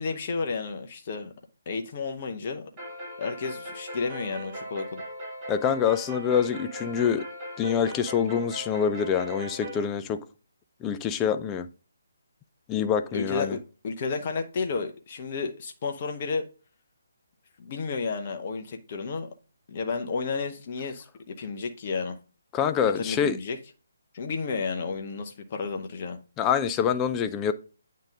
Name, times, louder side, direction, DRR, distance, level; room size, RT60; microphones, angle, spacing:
voice 1, 0.0-1.3 1.7-2.7 3.2-5.0 13.1-16.5 17.6-19.3 19.7-22.2 23.0-23.6 24.1-26.2, left 4 dB, 35° left, 0.7 m, -32 dB
sound 1, 2.8-9.8, equal, 20° right, 3.8 m, -39 dB
voice 2, 5.5-7.2 7.6-10.2 10.8-11.7 12.7-13.6 22.5-23.4 26.4-27.5, left 7 dB, 15° left, 0.4 m, -25 dB
8.8 x 3.8 x 3.6 m
figure-of-eight pair, 145°, 0 cm